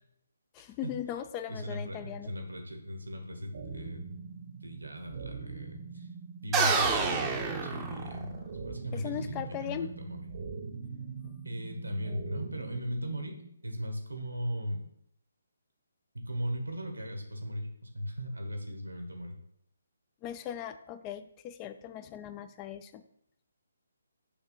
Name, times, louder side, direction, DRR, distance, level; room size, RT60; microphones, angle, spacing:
voice 1, 0.5-2.3 8.9-9.9 11.2-11.3 20.2-23.0, left 10 dB, 20° left, 11 dB, 0.4 m, -39 dB
voice 2, 1.5-4.0 4.6-6.1 6.4-10.2 11.4-13.4 13.6-14.8 16.1-19.4, equal, 85° right, 4 dB, 1.5 m, -38 dB
sound 1, 3.5-13.5, right 5 dB, 50° right, 0.9 m, -42 dB
sound 2, 6.5-8.5, right 4 dB, 15° right, 0.7 m, -28 dB
6.8 x 2.9 x 5.7 m, 0.73 s
figure-of-eight pair, 145°, 0 cm